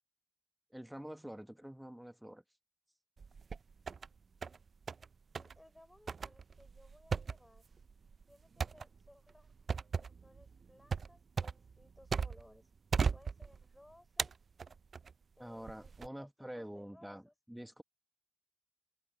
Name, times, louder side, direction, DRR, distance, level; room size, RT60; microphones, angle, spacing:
voice 1, 0.7-2.4 15.4-17.2 17.5-17.8, equal, 5° right, 1.3 m, -47 dB
sound 1, 3.2-4.1 4.4-5.1 5.4-5.6 6.1-12.6 12.9-13.8 14.2-15.1 15.7-16.1, right 5 dB, 55° right, 0.4 m, -37 dB
voice 2, 5.3-7.7 8.3-12.7 13.1-14.4 15.3-17.3, left 1 dB, 10° left, 5.1 m, -62 dB
supercardioid pair, 50°, 0 cm